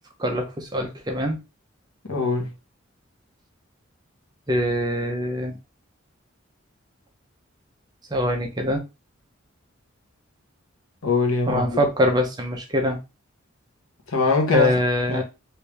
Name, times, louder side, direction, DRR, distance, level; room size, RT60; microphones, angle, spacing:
voice 1, 0.2-1.4 4.5-5.5 8.1-8.8 11.5-13.0 14.5-15.2, left 1 dB, 20° right, 0.6 m, -23 dB
voice 2, 2.1-2.5 11.0-11.8 14.1-14.7 15.1-15.2, left 3 dB, 85° left, 1.0 m, -22 dB
3.3 x 2.7 x 3.2 m
head